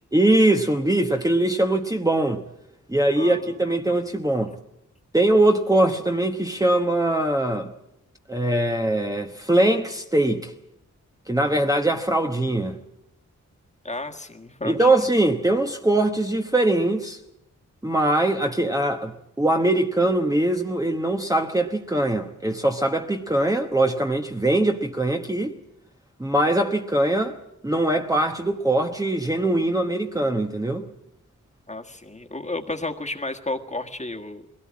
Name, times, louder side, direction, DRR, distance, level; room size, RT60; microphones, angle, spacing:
voice 1, 0.1-2.4 2.9-4.5 5.1-7.7 8.3-10.5 11.3-12.8 14.6-17.2 17.8-25.5 26.2-27.4 27.6-30.8, right 1 dB, 10° right, 1.0 m, -22 dB
voice 2, 3.2-3.5 13.8-15.0 31.7-34.4, left 2 dB, 25° left, 1.6 m, -32 dB
21.5 x 17.5 x 8.5 m
wide cardioid pair, 90°, 30 cm